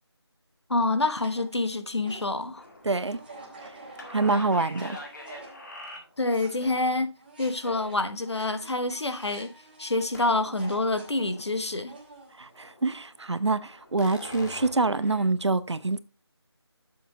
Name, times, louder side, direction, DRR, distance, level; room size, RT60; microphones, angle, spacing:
voice 1, 0.7-2.6 6.2-7.1 7.4-9.5 9.8-12.0, left 2 dB, 75° left, 1.2 m, -27 dB
sound 1, 1.1-6.0 6.3-12.6, right 3 dB, 20° right, 1.7 m, -47 dB
sound 2, 2.5-6.5 10.1-10.6 10.9-11.6 11.9-12.0 12.4-15.3, left 1 dB, 40° left, 1.9 m, -44 dB
voice 2, 2.8-3.2 4.1-5.0 12.4-16.0, right 3 dB, 80° right, 0.7 m, -26 dB
7.4 x 6.9 x 3.7 m
figure-of-eight pair, 170°, 14 cm